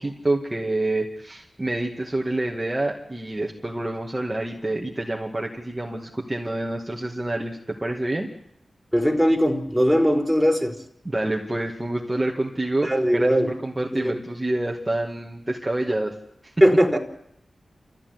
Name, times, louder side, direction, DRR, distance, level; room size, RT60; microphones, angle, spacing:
voice 1, 0.0-8.3 11.0-16.1 16.4-16.5, right 1 dB, 25° right, 0 dB, 2.4 m, -27 dB
voice 2, 8.9-10.8 12.8-13.5 13.9-14.2 16.6-17.0, equal, ahead, 3 dB, 4.1 m, -19 dB
28.5 x 14.5 x 9.7 m, 0.80 s
cardioid pair, 45°, 0 cm